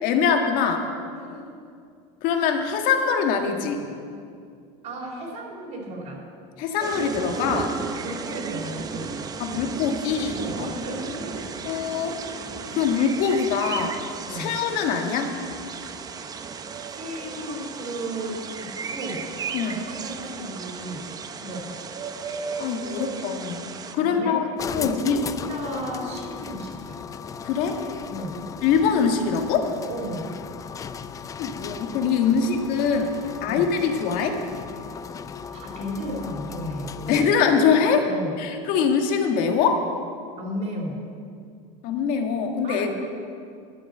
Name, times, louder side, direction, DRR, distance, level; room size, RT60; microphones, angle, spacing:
voice 1, 0.0-0.9 2.2-3.8 6.6-7.7 9.4-10.7 11.6-12.1 12.7-14.0 14.3-15.3 19.5-19.8 22.6-23.7 23.9-24.4 24.7-25.2 27.4-27.8 28.6-29.7 31.4-33.1 33.4-34.4 37.1-38.0 38.4-39.8 41.8-42.9, left 6 dB, 60° left, 4 dB, 1.7 m, -23 dB
voice 2, 1.1-1.6 4.8-6.2 8.0-9.2 10.4-11.5 14.2-14.5 16.9-19.2 19.6-21.0 21.4-21.7 23.9-24.4 24.8-25.1 25.5-27.0 28.1-28.4 29.9-30.3 32.3-32.4 33.4-33.7 35.5-37.3 38.0-38.4 40.4-41.0 42.6-42.9, right 1 dB, 45° right, -3 dB, 3.5 m, -34 dB
sound 1, 6.8-23.9, right 5 dB, 25° right, 0.7 m, -34 dB
sound 2, 24.6-37.5, left 6 dB, 20° left, 0.4 m, -37 dB
12.5 x 8.6 x 7.9 m, 2.3 s
supercardioid pair, 140°, 17 cm